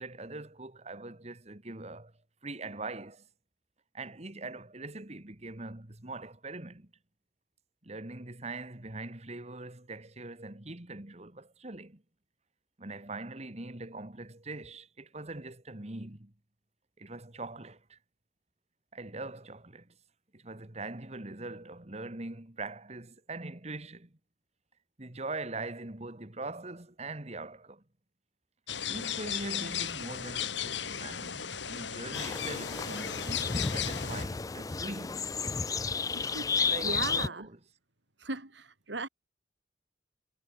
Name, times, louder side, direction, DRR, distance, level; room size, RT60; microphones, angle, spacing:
voice 1, 0.0-2.1 2.4-3.3 3.9-6.9 7.8-12.0 12.8-16.3 17.0-18.0 18.9-19.9 20.3-24.1 25.0-27.8 28.9-35.3 36.6-37.3, right 2 dB, 35° right, 1.9 m, -42 dB
sound 1, 28.7-34.2, left 8 dB, 80° left, 2.6 m, -36 dB
sound 2, 32.1-37.3, left 5 dB, 20° left, 0.4 m, -32 dB
voice 2, 36.1-37.5 38.2-39.1, right 3 dB, 75° right, 3.6 m, -38 dB
head